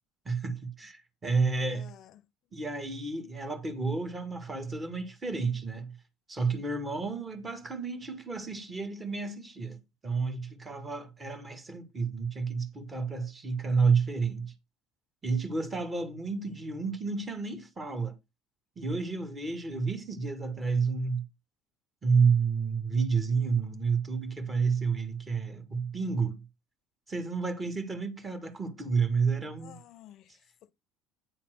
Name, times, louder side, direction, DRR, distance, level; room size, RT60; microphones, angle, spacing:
voice 1, 0.3-1.9 2.5-5.9 6.3-14.5 15.2-18.1 18.8-21.2 22.0-26.4 27.1-29.8, right 5 dB, 25° right, 2.1 m, -30 dB
voice 2, 1.7-2.2 29.6-30.7, left 11 dB, 55° left, 0.5 m, -53 dB
9.2 x 4.3 x 6.4 m
hypercardioid pair, 80°, 0 cm